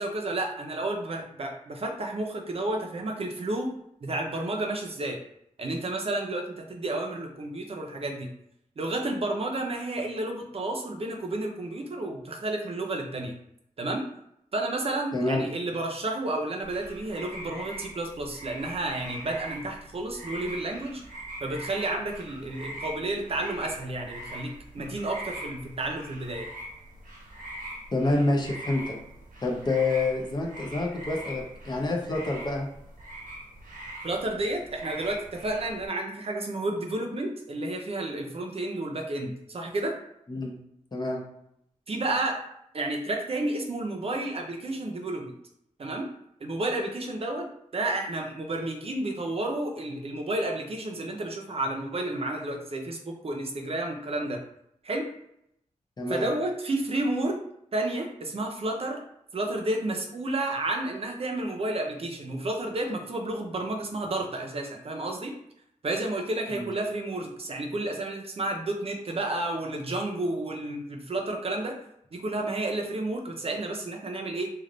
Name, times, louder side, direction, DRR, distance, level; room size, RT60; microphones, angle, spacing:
voice 1, 0.0-3.7 4.0-5.2 5.6-8.3 8.8-13.3 13.8-14.1 14.5-21.0 21.4-26.5 34.0-39.9 41.9-42.4 42.7-45.3 45.8-46.1 46.4-47.5 47.7-54.4 54.8-55.1 56.1-57.4 57.7-59.0 59.3-65.3 65.8-71.7 72.1-74.5, right 2 dB, 45° right, 2 dB, 0.7 m, -31 dB
voice 2, 15.1-15.5 27.9-29.0 29.4-32.7 40.3-40.6 40.9-41.2 56.0-56.3 66.5-66.7, left 2 dB, 30° left, 0 dB, 0.8 m, -27 dB
sound 1, 16.6-35.9, right 1 dB, 85° right, 1.1 m, -42 dB
3.2 x 2.4 x 3.8 m, 0.76 s
wide cardioid pair, 120°, 14 cm